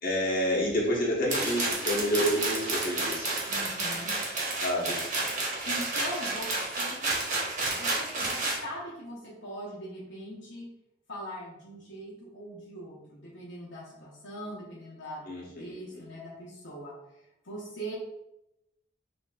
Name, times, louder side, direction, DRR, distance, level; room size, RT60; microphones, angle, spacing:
voice 1, 0.0-3.3 4.6-5.0 15.3-16.0, equal, 50° left, -4 dB, 1.4 m, -29 dB
sound 1, 1.3-8.6, right 2 dB, 40° right, 1.2 m, -30 dB
voice 2, 3.5-4.1 5.7-7.3 7.7-10.7 11.1-16.9 17.4-17.9, equal, 70° left, -6 dB, 0.9 m, -41 dB
6.1 x 2.7 x 2.5 m, 0.89 s
head